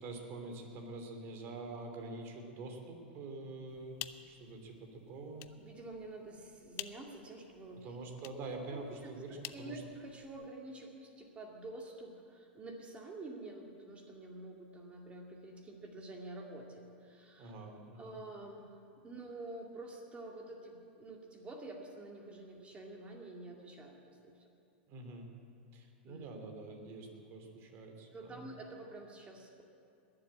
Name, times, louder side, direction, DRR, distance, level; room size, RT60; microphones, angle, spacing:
voice 1, 0.0-5.5 7.7-9.8 17.4-18.2 24.9-25.3 25.7-28.5, right 3 dB, 40° right, 3 dB, 2.9 m, -46 dB
sound 1, 3.7-10.5, left 14 dB, 45° left, 0.6 m, -51 dB
voice 2, 5.6-7.9 8.7-9.2 9.5-17.5 18.0-18.7 19.0-23.9 24.2-24.5 26.1-26.3 28.1-29.6, right 2 dB, 20° right, 1 dB, 2.3 m, -48 dB
21.0 x 7.7 x 8.7 m, 2.5 s
hypercardioid pair, 110°, 6 cm